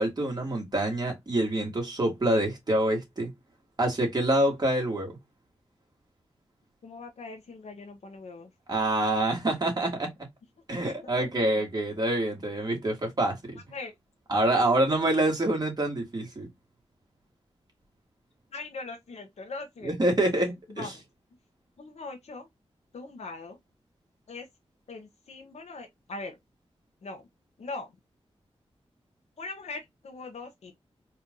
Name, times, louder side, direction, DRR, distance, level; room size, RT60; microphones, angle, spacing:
voice 1, 0.0-3.3 3.8-5.1 8.7-10.1 10.7-13.6 14.3-16.5 19.8-20.9, right 1 dB, 40° right, 2.1 m, -26 dB
voice 2, 6.8-8.5 10.7-11.3 13.7-13.9 18.5-20.0 20.7-20.9 21.8-22.5 22.9-23.6 24.3-24.5 24.9-26.4 27.0-27.3 27.6-27.9 29.4-30.7, left 3 dB, 85° left, 0.9 m, -41 dB
4.3 x 2.6 x 3.6 m
wide cardioid pair, 90°, 11 cm